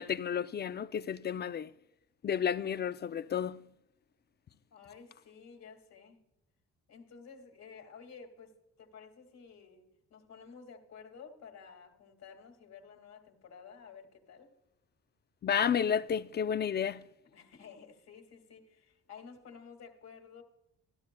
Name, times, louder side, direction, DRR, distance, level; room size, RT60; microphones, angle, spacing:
voice 1, 0.0-1.7 2.2-3.6 15.4-17.0, left 8 dB, 35° left, 0.4 m, -31 dB
voice 2, 4.7-6.2 6.9-14.5 17.2-20.4, left 6 dB, 60° left, 2.1 m, -52 dB
13.5 x 12.5 x 2.2 m
cardioid pair, 90°, 30 cm